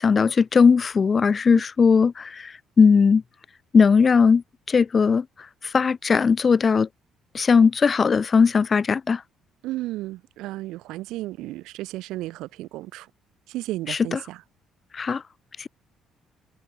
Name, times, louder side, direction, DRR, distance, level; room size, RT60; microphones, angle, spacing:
voice 1, 0.0-3.2 3.7-4.4 4.7-5.3 5.6-6.9 7.3-9.2 13.9-14.2 14.9-15.2 15.6-15.7, left 5 dB, 30° left, 0.5 m, -18 dB
voice 2, 9.6-13.1 13.5-14.4, right 17 dB, 90° right, 0.7 m, -33 dB
cardioid pair, 120°, 0 cm